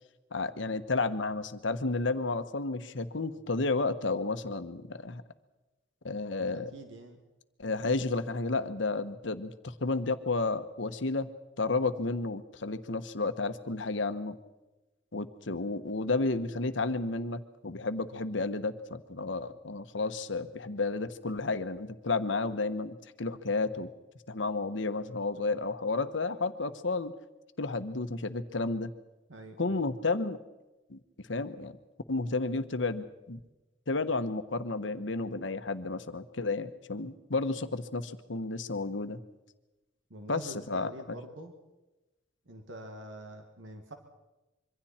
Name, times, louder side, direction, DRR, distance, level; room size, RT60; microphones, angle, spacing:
voice 1, 0.3-5.2 6.0-6.7 7.6-11.3 11.6-14.4 15.1-23.9 24.3-27.1 27.6-28.9 29.6-30.4 30.9-31.7 32.1-33.4 33.9-39.2 40.3-41.2, left 3 dB, 75° left, 10 dB, 1.2 m, -32 dB
voice 2, 6.4-7.2 29.3-29.8 40.1-41.5 42.5-43.9, right 1 dB, 85° right, 4 dB, 2.2 m, -46 dB
26.0 x 24.0 x 4.4 m, 1.1 s
head